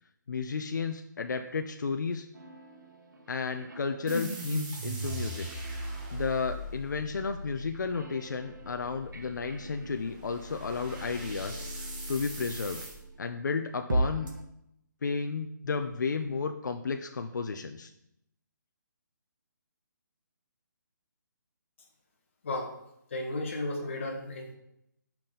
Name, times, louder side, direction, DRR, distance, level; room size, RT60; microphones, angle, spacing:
voice 1, 0.3-2.3 3.3-5.5 6.1-12.8 13.2-14.3 15.0-17.9, left 5 dB, 65° left, 6 dB, 0.6 m, -33 dB
sound 1, 2.3-13.2 13.9-14.4, right 1 dB, 70° right, 1.5 m, -40 dB
sound 2, 4.1-13.0, right 1 dB, 20° right, 1.3 m, -39 dB
voice 2, 22.4-22.7 23.1-24.5, left 2 dB, 40° left, 1 dB, 1.4 m, -34 dB
8.6 x 5.9 x 3.8 m, 0.79 s
hypercardioid pair, 175°, 11 cm